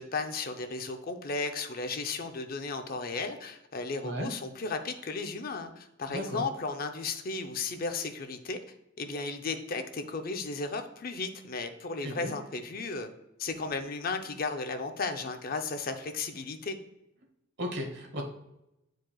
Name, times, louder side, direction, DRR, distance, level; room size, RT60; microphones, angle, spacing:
voice 1, 0.0-8.6 9.0-13.1 13.4-16.8, left 3 dB, 50° left, 7 dB, 0.6 m, -35 dB
voice 2, 6.1-6.5 12.0-12.3 17.6-18.2, equal, 60° right, 2 dB, 1.3 m, -35 dB
9.1 x 4.7 x 2.3 m, 0.89 s
head